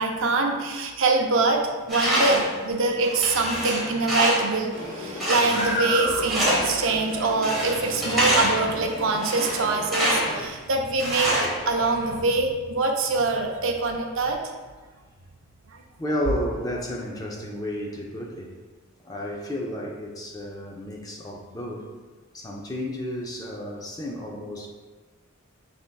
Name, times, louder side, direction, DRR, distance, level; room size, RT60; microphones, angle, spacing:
voice 1, 0.0-1.6 1.9-11.3 11.7-14.4, right 3 dB, 60° right, 2 dB, 0.5 m, -24 dB
Tools, 1.9-2.6 3.0-4.6 5.2-5.9 6.3-6.8 7.4-8.7 9.2-10.4 11.0-12.0, equal, ahead, 1.1 m, -25 dB
sound 1, 4.7-10.5, equal, 40° left, 1.0 m, -33 dB
voice 2, 16.0-18.6 19.0-21.9 22.3-24.7, left 1 dB, 15° left, -1 dB, 0.4 m, -32 dB
5.2 x 3.4 x 2.2 m, 1.3 s
head